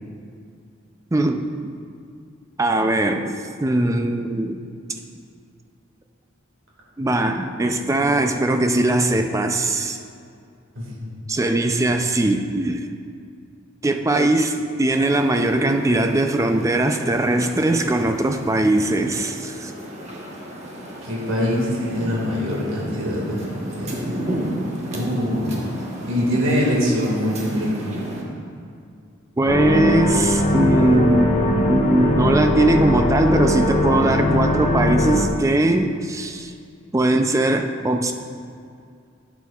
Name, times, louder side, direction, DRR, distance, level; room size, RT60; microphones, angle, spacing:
voice 1, 1.1-1.5 2.6-3.3 3.6-4.6 7.0-10.0 11.3-12.9 13.8-19.7 29.4-36.5 36.9-38.1, right 1 dB, 15° right, 5 dB, 0.4 m, -20 dB
voice 2, 10.8-11.1 21.0-24.1 24.9-25.7 26.0-27.7, equal, 70° right, -4 dB, 2.0 m, -23 dB
sound 1, 14.9-28.2, right 1 dB, 35° right, 1.1 m, -34 dB
sound 2, 29.5-35.3, left 1 dB, 30° left, 0.6 m, -20 dB
11.0 x 8.2 x 2.4 m, 2.3 s
head